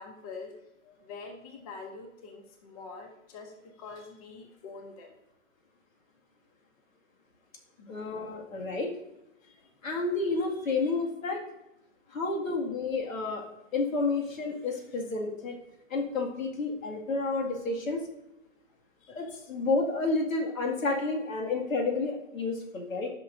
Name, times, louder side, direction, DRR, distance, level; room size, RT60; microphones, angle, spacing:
voice 1, 0.0-5.1 7.8-8.0 9.4-9.7 12.1-12.2 19.0-19.4, left 4 dB, 30° left, 4 dB, 0.8 m, -46 dB
voice 2, 7.9-8.9 9.8-11.4 12.1-13.4 13.7-15.6 15.9-18.0 19.1-23.1, left 3 dB, 80° left, 1 dB, 2.2 m, -30 dB
13.0 x 5.8 x 2.6 m, 0.91 s
hypercardioid pair, 160°, 40 cm